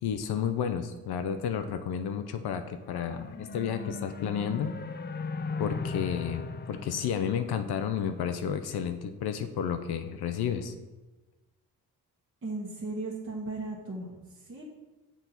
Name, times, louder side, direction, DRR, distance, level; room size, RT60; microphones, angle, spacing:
voice 1, 0.0-4.7 5.6-10.7, left 8 dB, 75° left, 8 dB, 0.6 m, -31 dB
sound 1, 2.7-8.2, left 4 dB, 25° left, 0.5 m, -38 dB
voice 2, 12.4-14.6, right 2 dB, 35° right, -4 dB, 1.3 m, -37 dB
7.0 x 4.3 x 4.0 m, 1.2 s
cardioid pair, 70°, 39 cm